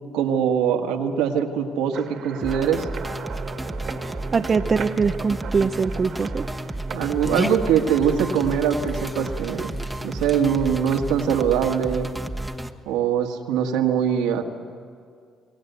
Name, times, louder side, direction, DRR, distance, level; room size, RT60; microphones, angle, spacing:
voice 1, 0.1-2.9 6.9-12.1 12.9-14.4, right 8 dB, 90° right, 2 dB, 1.8 m, -22 dB
sound 1, 1.9-11.1, right 7 dB, 65° right, 1.8 m, -40 dB
sound 2, 2.4-12.7, right 1 dB, 10° right, 1.3 m, -32 dB
voice 2, 4.3-6.5, right 5 dB, 40° right, 8 dB, 0.7 m, -22 dB
Dog, 6.9-12.3, left 2 dB, 15° left, 1.1 m, -39 dB
27.5 x 17.5 x 8.2 m, 2.2 s
supercardioid pair, 75°, 0 cm